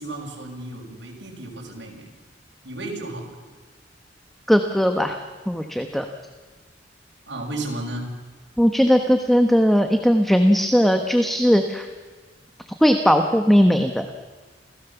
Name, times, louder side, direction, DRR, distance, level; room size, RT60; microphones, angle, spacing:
voice 1, 0.0-2.1 2.6-3.4 7.3-8.1, right 2 dB, 80° right, -1 dB, 6.2 m, -33 dB
voice 2, 4.5-5.2 5.5-6.0 8.6-11.9 12.8-14.1, equal, ahead, 6 dB, 1.2 m, -18 dB
28.0 x 16.5 x 7.1 m, 1.4 s
head